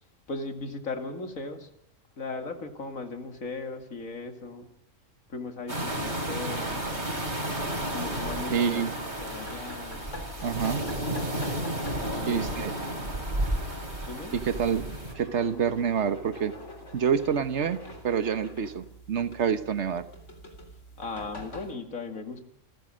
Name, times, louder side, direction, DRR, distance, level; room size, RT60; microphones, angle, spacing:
voice 1, 0.3-1.7 2.2-4.7 5.3-6.9 7.9-10.1 11.9-12.8 14.1-14.3 21.0-22.4, left 3 dB, 85° left, 6 dB, 2.6 m, -37 dB
sound 1, 5.7-15.1, right 1 dB, 35° right, 3.9 m, -32 dB
sound 2, 6.2-21.7, equal, 65° left, 3.9 m, -46 dB
voice 2, 8.5-9.0 10.4-10.8 12.3-12.7 14.3-16.6 16.9-20.0, right 7 dB, 60° right, 12 dB, 1.4 m, -27 dB
28.5 x 14.5 x 6.4 m, 0.84 s
omnidirectional pair, 1.4 m